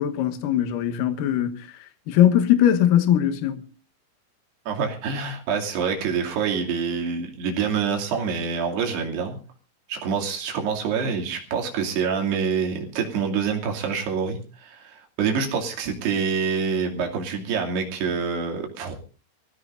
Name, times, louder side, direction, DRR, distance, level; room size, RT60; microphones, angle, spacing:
voice 1, 0.0-3.6, left 10 dB, 80° left, 2.0 m, -21 dB
voice 2, 4.7-9.4 9.9-18.9, right 6 dB, 60° right, 4.4 m, -26 dB
25.0 x 16.5 x 2.6 m
omnidirectional pair, 5.7 m